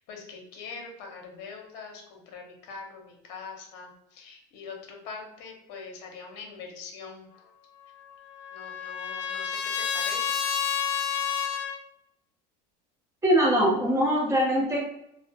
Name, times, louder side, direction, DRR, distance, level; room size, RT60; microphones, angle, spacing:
voice 1, 0.0-7.2 8.5-10.3, left 5 dB, 55° left, 1 dB, 0.8 m, -43 dB
Trumpet, 7.9-11.8, left 7 dB, 85° left, 0.4 m, -30 dB
voice 2, 13.2-14.8, equal, 15° right, -2 dB, 0.7 m, -22 dB
2.4 x 2.0 x 2.7 m, 0.80 s
supercardioid pair, 140°, 21 cm